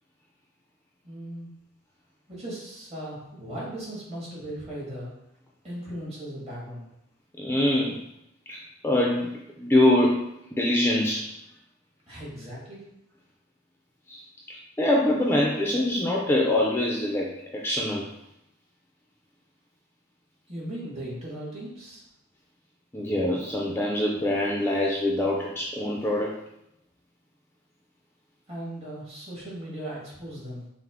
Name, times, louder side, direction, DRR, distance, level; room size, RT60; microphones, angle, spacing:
voice 1, 1.0-1.5 2.3-5.1 5.6-6.9 12.1-12.8 20.5-22.0 28.5-30.7, right 1 dB, 30° right, -6 dB, 1.6 m, -37 dB
voice 2, 7.4-8.0 8.5-9.3 9.6-10.2 10.5-11.3 14.1-14.2 14.5-18.1 22.9-26.4, left 1 dB, 10° left, -2 dB, 0.4 m, -24 dB
5.6 x 2.0 x 3.6 m, 0.80 s
head